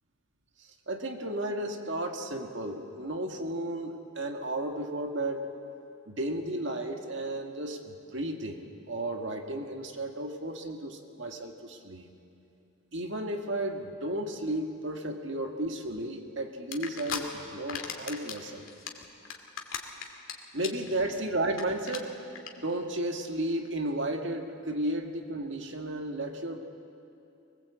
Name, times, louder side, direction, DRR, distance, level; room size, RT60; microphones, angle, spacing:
voice 1, 0.6-5.5 6.1-12.1 12.9-18.7 20.5-22.2 22.6-26.6, right 1 dB, 60° right, 3 dB, 2.0 m, -33 dB
sound 1, 16.7-17.2 17.5-18.4 18.7-20.3 20.6-20.9 21.2-21.3 21.5-21.6 21.9-22.0 22.4-22.5, left 7 dB, 80° left, 2.3 m, -35 dB
23.0 x 21.0 x 8.1 m, 2.6 s
head